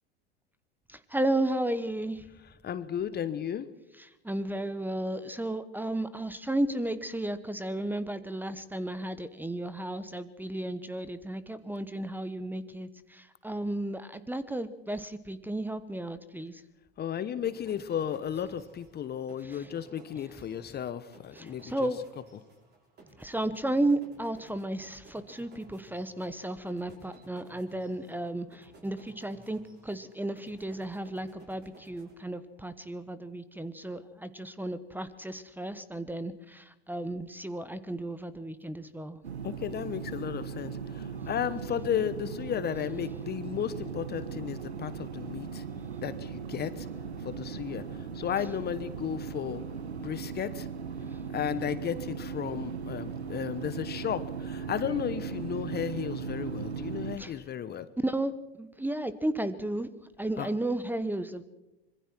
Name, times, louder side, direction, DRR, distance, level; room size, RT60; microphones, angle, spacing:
voice 1, 0.9-2.3 4.0-16.6 19.4-19.7 21.3-22.0 23.2-39.2 41.2-41.3 57.2-57.4 58.0-59.9 60.2-61.4, right 1 dB, 5° right, 14 dB, 1.2 m, -33 dB
voice 2, 2.6-3.7 17.0-21.9 39.4-45.6 46.0-46.9 47.2-47.8 48.1-49.6 50.0-50.7 51.3-57.9 60.4-60.5, left 9 dB, 30° left, 14 dB, 1.1 m, -34 dB
sound 1, 17.4-32.7, right 2 dB, 30° right, 6.7 m, -57 dB
sound 2, 39.2-57.2, right 6 dB, 85° right, 1.3 m, -38 dB
25.5 x 22.5 x 4.6 m, 0.95 s
hypercardioid pair, 80°, 32 cm